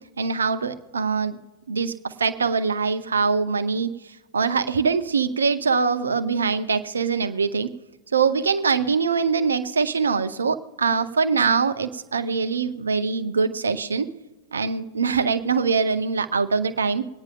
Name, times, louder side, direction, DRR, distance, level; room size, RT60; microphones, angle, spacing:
voice 1, 0.2-1.4 1.7-3.9 4.3-7.7 8.1-14.1 14.5-17.0, right 5 dB, 75° right, 11 dB, 0.7 m, -23 dB
25.0 x 9.6 x 2.5 m, 1.1 s
figure-of-eight pair, 90°, 0 cm